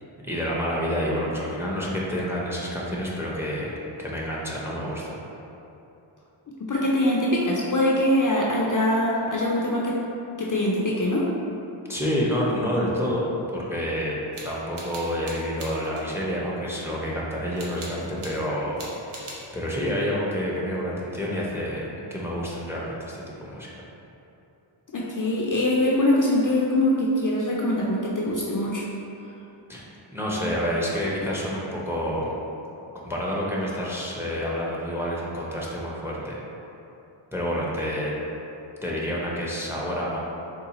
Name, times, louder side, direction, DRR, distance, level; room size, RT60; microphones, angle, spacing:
voice 1, 0.2-5.2 11.9-18.8 19.5-23.7 29.7-32.3 32.9-36.4 37.3-38.1 38.8-40.2, equal, 5° right, -4 dB, 0.5 m, -28 dB
voice 2, 6.6-10.0 10.4-11.3 24.9-28.8, left 1 dB, 40° left, -4 dB, 0.4 m, -23 dB
sound 1, 14.3-16.1 17.6-18.4 18.8-19.5, right 1 dB, 75° right, 0.8 m, -41 dB
3.9 x 2.3 x 2.8 m, 2.9 s
cardioid pair, 50°, 50 cm